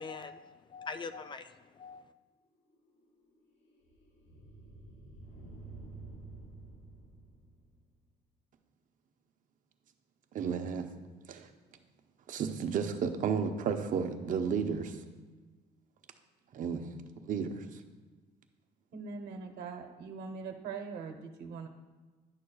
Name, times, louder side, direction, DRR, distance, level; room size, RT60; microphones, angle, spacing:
voice 1, 0.0-2.0, left 4 dB, 30° left, 0.3 m, -43 dB
sound 1, 2.4-8.0, right 3 dB, 60° left, 2.1 m, -51 dB
voice 2, 10.3-10.9 11.3-11.5 12.3-15.0 16.5-16.9 17.2-17.6, right 6 dB, 50° right, 0.7 m, -32 dB
voice 3, 18.9-21.7, right 5 dB, 80° right, 0.9 m, -42 dB
10.5 x 6.3 x 2.3 m
cardioid pair, 110°, 17 cm